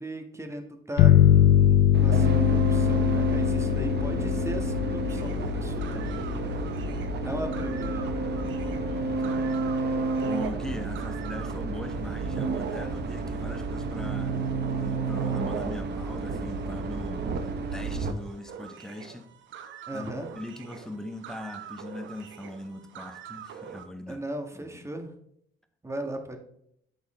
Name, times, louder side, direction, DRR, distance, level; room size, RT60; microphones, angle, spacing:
voice 1, 0.0-6.2 7.2-8.1 19.9-20.3 24.1-25.1 25.8-26.4, right 1 dB, 15° right, 1.5 m, -37 dB
sound 1, 1.0-10.3, left 10 dB, 80° left, 0.5 m, -24 dB
sound 2, 1.9-18.1, right 3 dB, 60° right, 1.1 m, -30 dB
sound 3, 5.1-11.6 11.9-23.9, right 7 dB, 75° right, 0.9 m, -46 dB
voice 2, 6.6-7.4 8.4-9.6 10.3-14.4 14.7-19.3 19.9-24.2 24.6-24.8, left 1 dB, 5° left, 1.2 m, -40 dB
8.1 x 6.8 x 3.2 m
cardioid pair, 90°, 20 cm